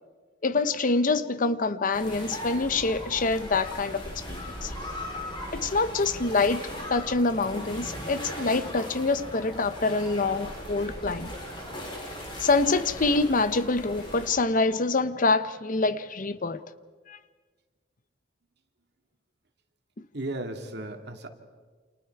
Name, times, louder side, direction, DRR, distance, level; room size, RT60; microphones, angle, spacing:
voice 1, 0.4-4.0 4.3-4.7 5.5-11.3 12.4-16.6 17.1-17.2, left 3 dB, 45° left, 0.8 m, -26 dB
sound 1, 1.9-14.3, equal, 30° left, 6.8 m, -38 dB
voice 2, 20.1-21.3, right 1 dB, 65° right, 2.5 m, -35 dB
28.5 x 28.5 x 4.7 m
head